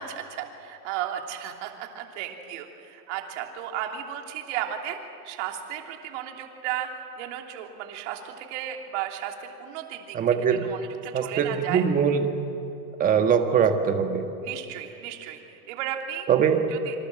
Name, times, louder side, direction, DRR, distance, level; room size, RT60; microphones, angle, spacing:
voice 1, 0.0-10.2 10.5-11.8 14.4-16.3 16.7-16.9, right 10 dB, 45° right, 3 dB, 3.1 m, -34 dB
voice 2, 10.1-10.7 11.1-12.3 13.0-14.2 16.3-16.6, right 7 dB, 15° right, 6 dB, 1.5 m, -22 dB
27.0 x 25.5 x 7.6 m, 2.9 s
supercardioid pair, 160°, 48 cm